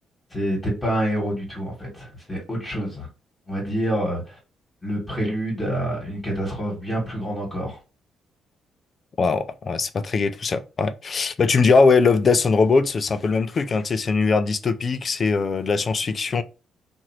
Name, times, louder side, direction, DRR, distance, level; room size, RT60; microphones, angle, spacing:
voice 1, 0.3-3.1 3.5-4.4 4.8-7.8, right 1 dB, 20° left, 1.7 m, -27 dB
voice 2, 9.2-16.4, left 4 dB, 40° left, 0.4 m, -21 dB
2.9 x 2.6 x 2.8 m
cardioid pair, 90°, 0 cm